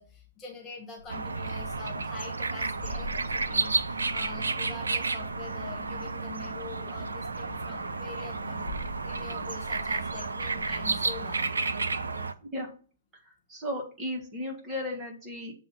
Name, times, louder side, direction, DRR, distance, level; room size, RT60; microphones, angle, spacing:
voice 1, 0.0-8.7 9.0-11.5 12.1-12.3, left 5 dB, 20° left, -1 dB, 1.1 m, -45 dB
sound 1, 1.0-11.2, equal, 70° left, 1.4 m, -45 dB
sound 2, 1.1-12.3, right 3 dB, 70° right, 0.4 m, -32 dB
voice 2, 13.5-15.5, left 1 dB, 20° right, -1 dB, 1.7 m, -35 dB
7.2 x 2.8 x 5.7 m, 0.39 s
figure-of-eight pair, 115°, 0 cm